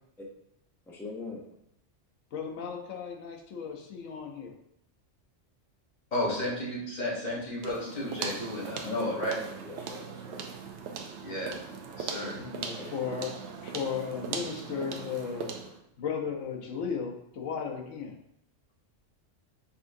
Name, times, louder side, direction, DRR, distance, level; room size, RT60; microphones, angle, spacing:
voice 1, 0.9-1.4 8.8-10.5 12.2-12.9, left 3 dB, 5° left, -1 dB, 0.4 m, -42 dB
voice 2, 2.3-4.5 12.4-13.3 13.6-15.5 16.0-18.1, left 6 dB, 85° left, 2 dB, 1.1 m, -35 dB
voice 3, 6.1-9.3 11.2-11.6 11.9-12.4, left 1 dB, 40° left, -5 dB, 1.3 m, -33 dB
sound 1, 7.6-15.8, right 6 dB, 70° right, 0.8 m, -39 dB
5.4 x 3.6 x 2.6 m, 0.77 s
omnidirectional pair, 1.3 m